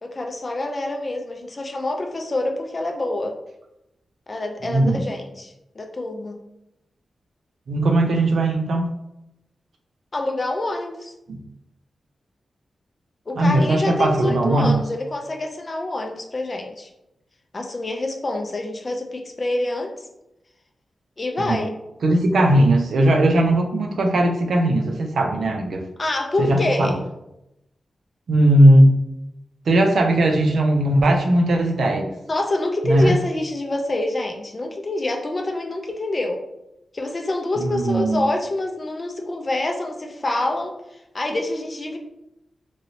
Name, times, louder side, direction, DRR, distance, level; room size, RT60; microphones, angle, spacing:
voice 1, 0.0-3.3 4.3-6.4 10.1-11.1 13.3-16.9 17.5-20.1 21.2-21.7 26.0-26.9 32.3-36.4 36.9-40.7 41.1-42.0, left 2 dB, 30° left, 3 dB, 0.4 m, -26 dB
voice 2, 4.6-5.0 7.7-8.9 11.3-11.4 13.4-14.8 21.4-21.6 22.0-25.8 26.4-26.9 28.3-28.9 29.7-32.1 32.8-33.1 37.6-38.2, right 1 dB, 70° right, 2 dB, 0.5 m, -18 dB
3.1 x 2.6 x 2.7 m, 0.87 s
wide cardioid pair, 160°, 0 cm